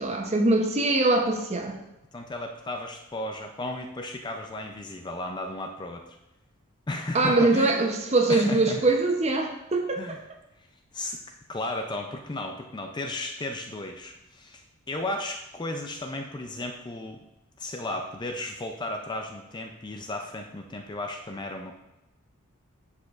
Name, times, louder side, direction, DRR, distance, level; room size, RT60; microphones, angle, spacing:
voice 1, 0.0-1.8 7.1-10.2, right 2 dB, 30° right, 3 dB, 0.7 m, -23 dB
voice 2, 2.1-6.2 6.9-7.8 8.3-8.8 10.0-10.2 10.9-11.2 11.5-17.2 17.6-21.8, left 2 dB, 20° left, 4 dB, 0.4 m, -34 dB
10.0 x 4.9 x 2.4 m, 0.97 s
head